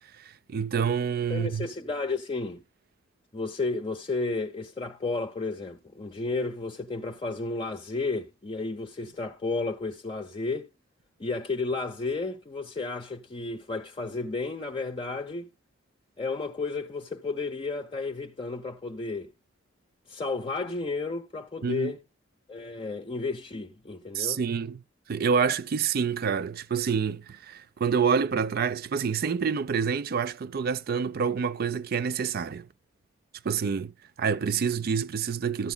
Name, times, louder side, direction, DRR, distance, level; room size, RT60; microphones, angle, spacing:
voice 1, 0.2-1.7 21.6-21.9 24.1-24.8 25.1-32.7 33.4-33.9 34.2-35.7, right 6 dB, 50° right, 0.4 m, -27 dB
voice 2, 1.3-2.6 3.3-10.7 11.2-15.5 16.2-19.3 20.1-22.0 22.5-24.4, left 3 dB, 25° left, 0.6 m, -32 dB
13.0 x 8.1 x 2.2 m
head